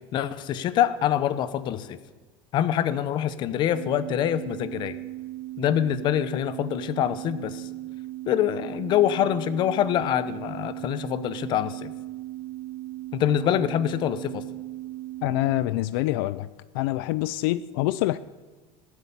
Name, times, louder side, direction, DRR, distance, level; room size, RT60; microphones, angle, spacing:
voice 1, 0.1-2.0 2.5-5.0 5.6-7.7 8.3-11.9 13.1-14.4, left 10 dB, 40° left, 14 dB, 0.9 m, -25 dB
sound 1, 3.7-15.7, right 16 dB, 60° right, 0.7 m, -37 dB
voice 2, 15.2-16.5 16.7-18.2, left 17 dB, 70° left, 15 dB, 0.5 m, -25 dB
18.0 x 8.3 x 8.5 m, 1.4 s
cardioid pair, 160°, 12 cm